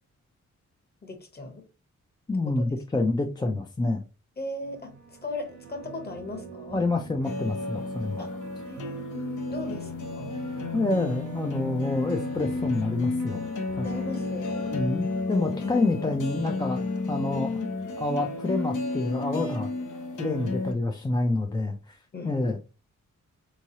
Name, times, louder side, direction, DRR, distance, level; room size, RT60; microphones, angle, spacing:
voice 1, 1.0-1.6 2.3-2.6 3.0-3.1 4.4-6.8 8.2-8.3 8.6-9.1 9.5-10.4 13.8-14.9 22.1-22.6, left 2 dB, 35° left, 1.0 m, -38 dB
voice 2, 2.3-4.0 6.7-8.3 10.7-13.4 13.8-13.9 14.7-17.6 18.0-19.7 20.2-22.0 22.2-22.6, left 2 dB, 15° left, 0.3 m, -27 dB
sound 1, 4.6-18.0, right 5 dB, 65° right, 0.8 m, -44 dB
sound 2, 7.2-20.7, left 3 dB, 90° left, 0.9 m, -32 dB
4.6 x 3.1 x 2.7 m
wide cardioid pair, 165°, 30 cm